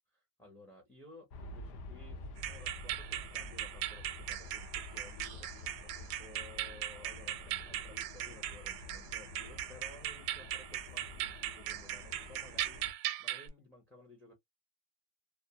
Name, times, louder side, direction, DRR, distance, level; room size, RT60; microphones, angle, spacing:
voice 1, 0.1-14.3, left 2 dB, 5° left, 0.4 m, -56 dB
Aircraft, 1.3-12.9, left 2 dB, 50° left, 0.7 m, -49 dB
sound 1, 2.4-13.5, right 13 dB, 85° right, 0.6 m, -39 dB
2.2 x 2.1 x 2.7 m
cardioid pair, 160°, 48 cm